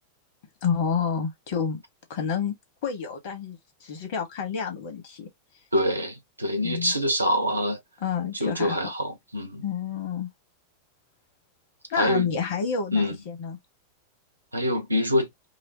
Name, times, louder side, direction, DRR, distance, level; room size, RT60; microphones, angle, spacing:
voice 1, 0.6-1.8 2.1-2.5 2.8-5.3 6.6-6.9 8.0-8.8 9.6-10.3 11.9-13.6, left 6 dB, 50° left, 1.5 m, -29 dB
voice 2, 5.7-7.8 8.3-9.6 11.9-12.3 12.9-13.2 14.5-15.3, equal, 85° right, 0.9 m, -25 dB
4.9 x 2.1 x 2.8 m
figure-of-eight pair, 90°, 0 cm